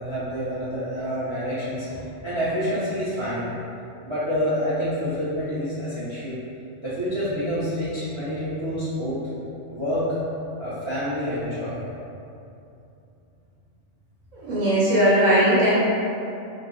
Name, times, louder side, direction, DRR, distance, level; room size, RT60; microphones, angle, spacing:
voice 1, 0.0-3.4 4.0-6.4 6.8-9.2 9.7-10.1 10.6-11.8, equal, 30° right, -11 dB, 0.7 m, -27 dB
voice 2, 14.5-15.7, right 1 dB, 75° right, -8 dB, 1.2 m, -18 dB
3.3 x 2.2 x 3.9 m, 2.7 s
omnidirectional pair, 1.4 m